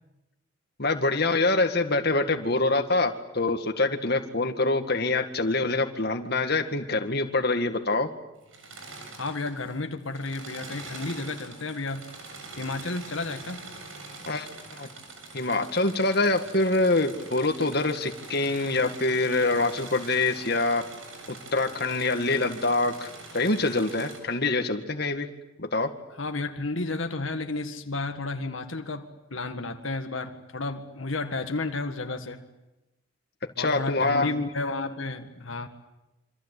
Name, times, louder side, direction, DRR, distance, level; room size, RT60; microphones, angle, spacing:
voice 1, 0.8-8.1 14.3-14.5 14.7-14.9 15.3-20.8 21.3-23.1 23.3-25.3 25.6-25.9 33.6-34.3, left 2 dB, 50° left, 6 dB, 2.0 m, -25 dB
Engine / Mechanisms, 8.4-9.8 10.0-24.2, right 3 dB, 80° right, 7.1 m, -44 dB
voice 2, 9.1-12.1 12.6-13.7 26.2-32.4 33.6-35.7, left 3 dB, 75° left, 6 dB, 1.8 m, -32 dB
27.0 x 25.5 x 8.4 m, 0.97 s
head